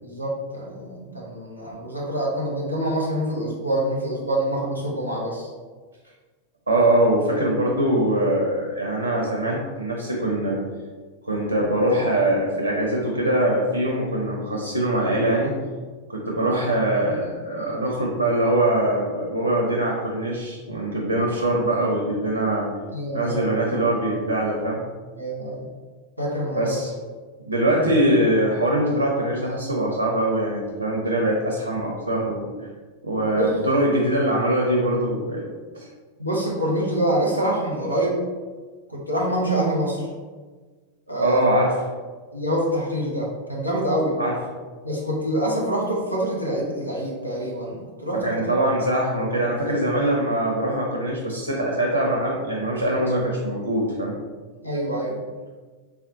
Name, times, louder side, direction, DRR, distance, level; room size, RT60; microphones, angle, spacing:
voice 1, 0.0-5.5 22.9-23.4 25.2-25.7 26.2-26.7 27.8-27.9 33.1-33.5 36.2-38.2 38.9-40.1 41.1-41.4 42.3-44.2 44.8-48.5 54.6-55.2, right 1 dB, 90° left, -3 dB, 0.7 m, -26 dB
voice 2, 6.7-10.6 11.2-15.6 16.1-22.7 23.1-24.8 26.6-26.9 27.5-32.7 33.0-35.4 35.7-35.9 41.2-41.8 44.2-44.4 48.1-54.1, right 1 dB, 80° right, -1 dB, 0.4 m, -22 dB
3.5 x 2.1 x 2.7 m, 1.4 s
figure-of-eight pair, 90°, 0 cm